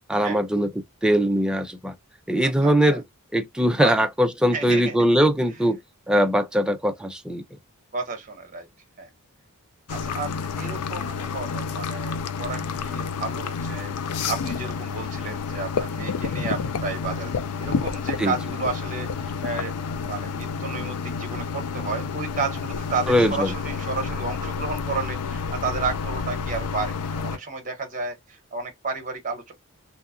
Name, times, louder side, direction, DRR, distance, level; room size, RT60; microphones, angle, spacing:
voice 1, 0.1-0.7 1.0-1.9 2.3-3.0 3.3-5.8 6.1-7.4 18.2-18.3 23.1-23.5, equal, 5° right, 0.3 m, -21 dB
voice 2, 2.6-3.0 3.8-3.9 4.5-5.1 7.9-8.7 9.0-9.1 9.9-29.5, right 4 dB, 35° right, 0.9 m, -32 dB
sound 1, 9.9-27.4, left 5 dB, 80° left, 0.4 m, -30 dB
2.7 x 2.3 x 2.4 m
head